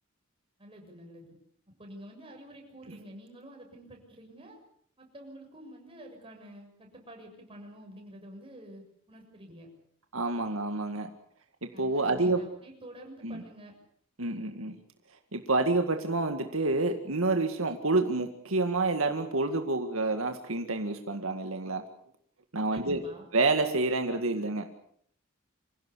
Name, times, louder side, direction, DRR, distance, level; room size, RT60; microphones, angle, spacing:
voice 1, 0.6-1.3 1.7-4.6 5.0-9.7 11.7-13.7 22.7-23.3, right 1 dB, 25° right, 1 dB, 7.0 m, -48 dB
voice 2, 10.1-11.1 11.8-12.4 13.2-13.4 14.2-14.8 15.3-21.8 22.5-23.0 23.3-24.7, right 3 dB, 80° right, 6 dB, 2.0 m, -28 dB
26.5 x 16.5 x 8.5 m, 0.66 s
head